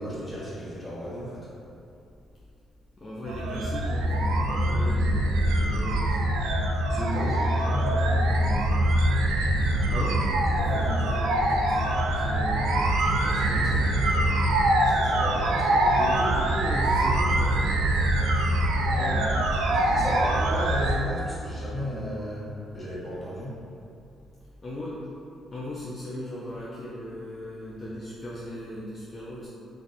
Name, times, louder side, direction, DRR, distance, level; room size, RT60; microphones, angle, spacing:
voice 1, 0.0-1.5 6.9-8.3 10.5-11.0 14.8-16.2 18.9-19.4 19.7-22.5 22.7-23.5, equal, 10° left, -10 dB, 1.3 m, -35 dB
voice 2, 3.0-6.2 8.3-9.0 9.9-10.2 10.6-12.7 13.2-14.0 16.0-17.8 19.0-19.3 24.6-25.0 25.5-29.5, left 1 dB, 30° left, -7 dB, 0.5 m, -37 dB
sound 1, 3.3-21.0, right 1 dB, 90° right, 0.3 m, -24 dB
2.6 x 2.3 x 4.0 m, 2.6 s
cardioid pair, 90°, 0 cm